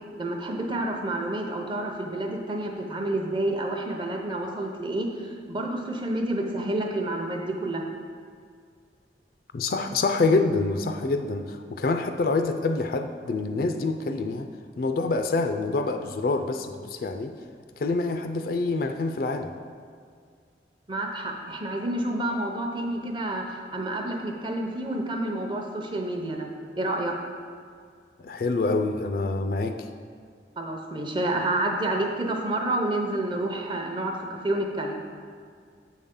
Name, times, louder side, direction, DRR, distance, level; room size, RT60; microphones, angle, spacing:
voice 1, 0.2-7.8 20.9-26.5 26.8-27.1 30.6-35.0, right 1 dB, 25° right, 2 dB, 0.7 m, -29 dB
voice 2, 9.5-14.5 14.8-17.4 17.8-19.5 28.2-29.9, left 3 dB, 55° left, 7 dB, 0.4 m, -26 dB
7.5 x 5.4 x 3.7 m, 2.1 s
head